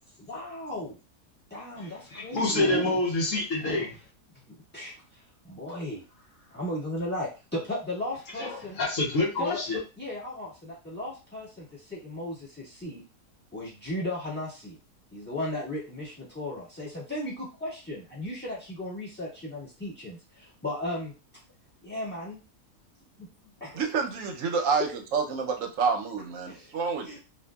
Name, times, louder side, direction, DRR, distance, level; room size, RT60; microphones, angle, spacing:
voice 1, 0.2-1.0 1.5-3.0 3.6-3.9 4.4-8.8 9.4-9.6 10.0-13.0 13.5-14.8 15.1-21.1 21.8-22.4 23.2-23.9 24.8-24.9 26.4-26.8 27.0-27.2, left 1 dB, 5° left, -6 dB, 1.4 m, -36 dB
voice 2, 1.8-3.9 8.4-9.8, left 2 dB, 65° left, -1 dB, 1.0 m, -28 dB
voice 3, 23.7-27.2, right 5 dB, 65° right, 3 dB, 0.9 m, -28 dB
2.7 x 2.5 x 2.2 m, 0.31 s
omnidirectional pair, 1.6 m